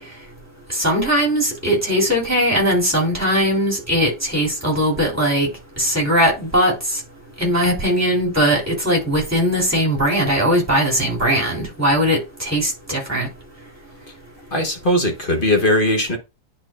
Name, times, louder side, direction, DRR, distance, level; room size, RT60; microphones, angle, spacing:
voice 1, 0.7-5.5 5.8-6.7 7.4-13.3, equal, 10° right, 3.0 m, -19 dB
voice 2, 14.5-16.2, left 1 dB, 35° left, 1.3 m, -19 dB
10.5 x 4.0 x 2.4 m
omnidirectional pair, 1.7 m